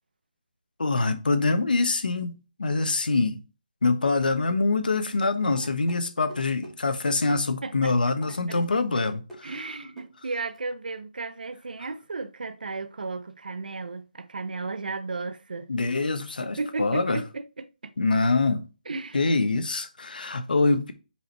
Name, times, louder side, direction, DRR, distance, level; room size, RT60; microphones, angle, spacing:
voice 1, 0.8-3.4 3.8-9.5 15.7-17.2 18.0-18.6 19.1-20.9, left 3 dB, 75° left, 1.2 m, -25 dB
sound 1, 5.2-6.0 6.3-6.7 7.3-7.5 7.9-8.7 9.0-9.4 10.0-10.1 10.5-10.6, right 1 dB, ahead, 1.9 m, -44 dB
voice 2, 7.6-8.1 8.5-8.6 9.4-15.7 16.4-17.9 18.9-19.2, right 3 dB, 75° right, 0.8 m, -34 dB
5.6 x 5.0 x 4.6 m
hypercardioid pair, 170°, 5 cm